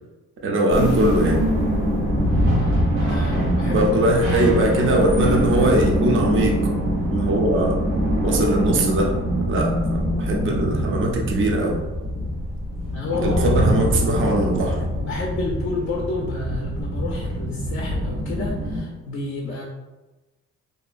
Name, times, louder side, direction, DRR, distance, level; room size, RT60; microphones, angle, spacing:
voice 1, 0.4-1.4 3.7-7.8 8.2-9.2 9.5-11.8 13.2-14.8, right 1 dB, 40° right, 0 dB, 0.5 m, -21 dB
sound 1, 0.7-18.8, equal, 90° right, 1.0 m, -23 dB
voice 2, 3.0-3.8 12.9-14.1 15.0-19.6, left 2 dB, 40° left, -1 dB, 0.4 m, -30 dB
2.7 x 2.3 x 2.3 m, 1.1 s
cardioid pair, 90°, 30 cm